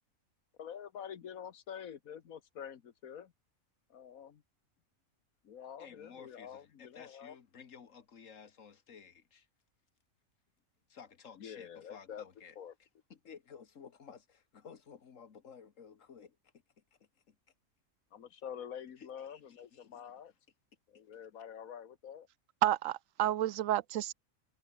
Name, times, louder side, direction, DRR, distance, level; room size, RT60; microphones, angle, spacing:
voice 1, 0.6-3.3 3.9-4.4 5.4-7.4 11.4-12.7 18.1-20.3 20.9-22.3, left 8 dB, 85° left, 1.6 m, -47 dB
voice 2, 5.8-9.5 10.9-16.4 17.3-17.4 19.0-20.1, left 6 dB, 70° left, 1.8 m, -54 dB
voice 3, 22.6-24.1, right 12 dB, 75° right, 1.0 m, -30 dB
omnidirectional pair, 1.4 m